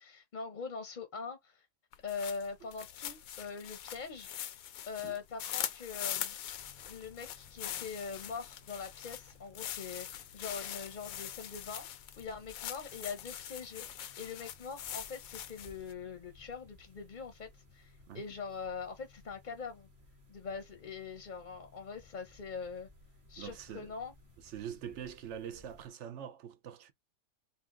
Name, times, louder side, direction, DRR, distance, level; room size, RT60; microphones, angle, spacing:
voice 1, 0.0-1.6 2.0-4.3 4.9-6.4 6.9-11.9 12.2-13.9 14.2-19.9 20.3-22.9 23.3-24.1, left 5 dB, 40° left, 0.7 m, -43 dB
sound 1, 1.9-15.9, left 11 dB, 75° left, 1.0 m, -42 dB
sound 2, 6.5-25.9, left 2 dB, 45° right, 1.7 m, -60 dB
voice 2, 23.4-23.9 24.4-26.9, right 9 dB, 65° right, 0.8 m, -44 dB
5.3 x 2.4 x 3.7 m
omnidirectional pair, 1.5 m